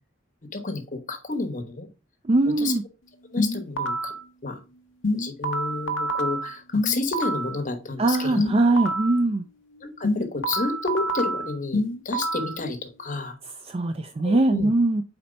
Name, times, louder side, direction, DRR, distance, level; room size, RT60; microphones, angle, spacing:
voice 1, 0.5-1.9 2.6-2.7 3.3-4.1 4.4-4.6 5.1-8.8 9.8-13.3 14.2-14.7, left 3 dB, 40° left, 6 dB, 1.2 m, -30 dB
voice 2, 2.3-2.8 8.0-9.4 13.7-15.0, right 2 dB, 30° right, 7 dB, 0.4 m, -21 dB
sound 1, 3.4-4.2 5.0-7.6 8.4-9.2 10.0-12.6, equal, 65° left, 0.8 m, -27 dB
4.3 x 4.3 x 5.1 m, 0.31 s
head